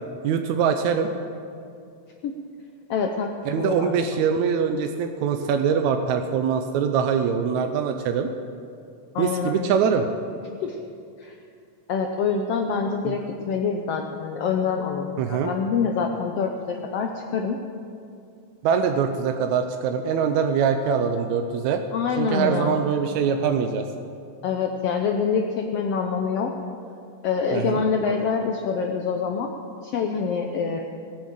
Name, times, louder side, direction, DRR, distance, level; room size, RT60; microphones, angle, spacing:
voice 1, 0.2-1.1 3.4-8.3 9.2-10.0 13.0-13.1 15.2-15.5 18.6-21.8 22.2-23.9 27.5-27.8, right 7 dB, 80° right, 6 dB, 1.8 m, -23 dB
voice 2, 2.9-3.3 3.6-3.9 9.1-9.7 10.4-10.8 11.2-11.4 11.9-17.6 21.9-22.8 24.4-26.5 27.2-29.5 29.8-30.8, left 6 dB, 90° left, 3 dB, 1.3 m, -26 dB
19.0 x 7.3 x 7.6 m, 2.4 s
omnidirectional pair, 3.8 m